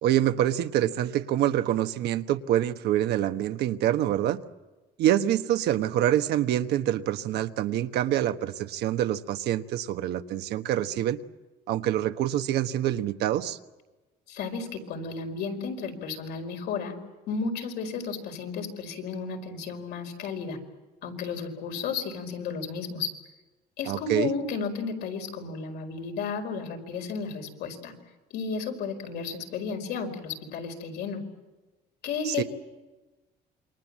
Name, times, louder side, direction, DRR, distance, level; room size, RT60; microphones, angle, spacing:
voice 1, 0.0-4.4 5.0-11.2 11.7-13.6 23.9-24.3 32.2-32.4, right 12 dB, 80° right, 9 dB, 1.2 m, -26 dB
voice 2, 14.3-17.0 17.3-20.6 21.0-23.1 23.8-27.9 28.3-31.2 32.0-32.4, left 5 dB, 80° left, 4 dB, 5.0 m, -33 dB
28.0 x 23.5 x 7.5 m, 1.2 s
cardioid pair, 110°, 17 cm